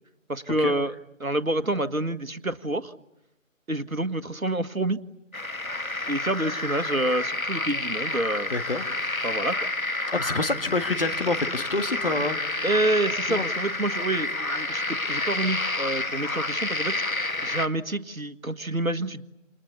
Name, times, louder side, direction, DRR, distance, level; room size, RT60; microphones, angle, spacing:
voice 1, 0.3-0.9 1.2-2.9 3.7-5.0 6.1-8.5 9.2-9.6 12.6-17.0 17.4-19.2, right 1 dB, 90° right, 11 dB, 1.7 m, -28 dB
sound 1, 5.3-17.7, left 2 dB, 90° left, 1.8 m, -29 dB
voice 2, 8.5-9.2 10.1-12.6 13.3-13.4, left 2 dB, 45° left, 6 dB, 1.8 m, -28 dB
29.0 x 28.5 x 7.0 m, 0.89 s
figure-of-eight pair, 165°, 40 cm